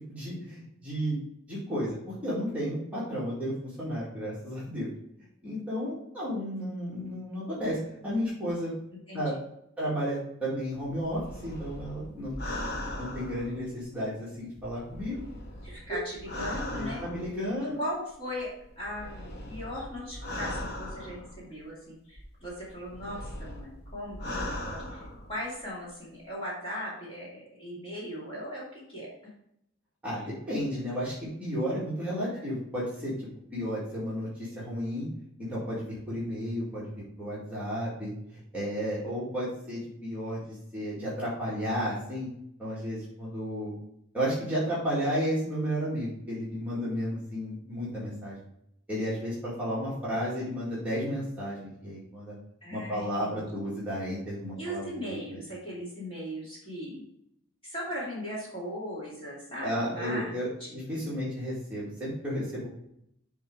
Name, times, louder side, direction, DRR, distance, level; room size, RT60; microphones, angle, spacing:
voice 1, 0.1-1.2 1.5-4.9 5.4-7.8 8.0-8.7 9.1-9.3 9.8-12.3 13.0-15.3 15.9-16.1 16.8-17.8 30.0-31.1 31.4-33.1 33.5-35.1 35.4-36.9 37.2-42.3 42.6-43.7 44.1-48.4 48.9-52.3 52.7-55.4 59.6-62.7, equal, 5° right, -8 dB, 2.0 m, -33 dB
sound 1, 10.8-14.1 14.6-17.5 18.4-21.6 22.2-25.6 25.8-25.9, left 1 dB, 50° left, 1.0 m, -39 dB
voice 2, 15.6-17.1 17.8-29.3 30.1-30.3 32.3-32.5 52.6-53.8 54.6-57.0 57.6-60.3 60.6-60.8, equal, 25° left, -6 dB, 2.4 m, -38 dB
7.0 x 3.8 x 4.7 m, 0.75 s
head